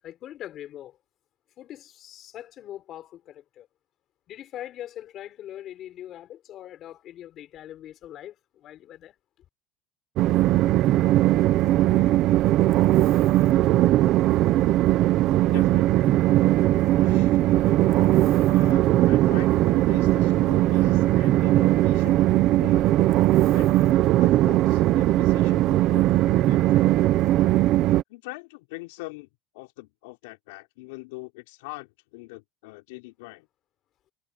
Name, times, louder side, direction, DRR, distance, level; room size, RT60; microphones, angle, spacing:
voice 1, 0.0-1.0 1.6-3.7 4.3-9.1, left 12 dB, 35° left, 5.9 m, -42 dB
Train, 10.2-28.0, right 15 dB, 40° right, 1.0 m, -19 dB
voice 2, 11.8-12.3 15.5-16.0 17.0-17.4 17.6-18.0 18.5-22.9 23.5-23.8 24.2-26.9 28.1-29.3 29.5-33.5, left 24 dB, 80° left, 6.1 m, -43 dB
cardioid pair, 170°, 0 cm